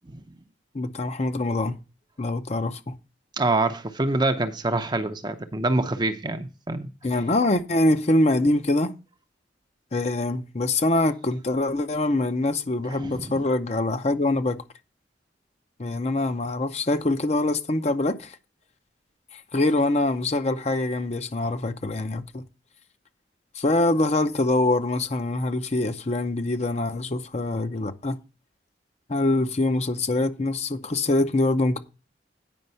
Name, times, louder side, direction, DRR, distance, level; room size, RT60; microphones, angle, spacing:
voice 1, 0.7-1.8 2.2-2.9 7.0-8.9 9.9-14.6 15.8-18.4 19.3-22.4 23.6-28.2 29.1-31.8, left 2 dB, 35° left, 0.7 m, -24 dB
voice 2, 3.4-6.9 12.9-13.4, right 2 dB, 25° right, 0.7 m, -26 dB
9.2 x 5.3 x 5.5 m
head